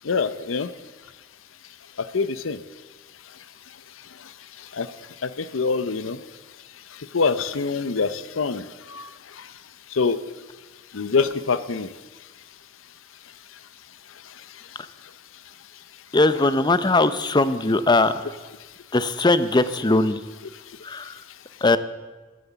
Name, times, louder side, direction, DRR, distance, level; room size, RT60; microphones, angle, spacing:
voice 1, 0.1-0.7 2.1-2.6 4.8-4.9 5.2-6.2 7.1-8.6 8.9-9.1 10.0-10.2 10.9-11.9, left 4 dB, 80° left, 14 dB, 0.7 m, -24 dB
voice 2, 16.1-18.1 18.9-20.2 20.8-21.1 21.6-21.8, left 2 dB, 20° left, 13 dB, 0.6 m, -20 dB
15.5 x 12.0 x 6.9 m, 1.3 s
head